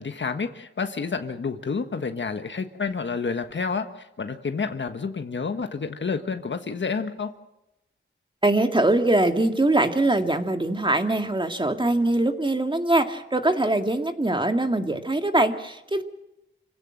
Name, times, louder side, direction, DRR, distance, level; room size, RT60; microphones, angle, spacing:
voice 1, 0.0-7.3, left 5 dB, 60° left, 7 dB, 1.4 m, -29 dB
voice 2, 8.4-16.0, right 2 dB, 25° right, 6 dB, 2.1 m, -22 dB
27.5 x 16.5 x 7.7 m, 0.91 s
wide cardioid pair, 75°, 21 cm